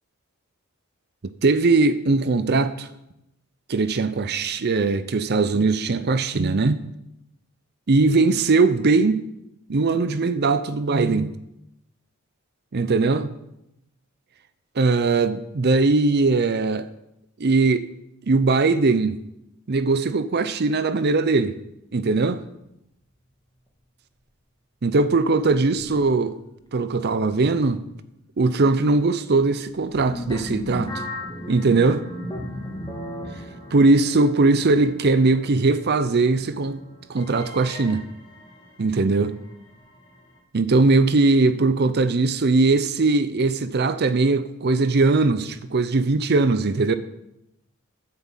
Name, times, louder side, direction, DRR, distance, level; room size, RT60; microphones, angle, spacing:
voice 1, 1.4-2.9 3.7-6.8 7.9-9.2 9.7-11.3 12.7-13.3 14.8-16.9 17.4-17.9 18.3-19.2 19.7-21.6 21.9-22.4 24.8-26.4 26.7-27.8 28.4-31.0 31.5-32.0 33.7-36.8 37.1-38.0 38.8-39.3 40.5-46.9, right 3 dB, 50° right, 0.6 m, -20 dB
sound 1, 25.7-26.8 27.1-27.3 27.8-28.0 29.7-40.4, left 1 dB, 20° left, 2.0 m, -37 dB
9.8 x 7.5 x 7.4 m
head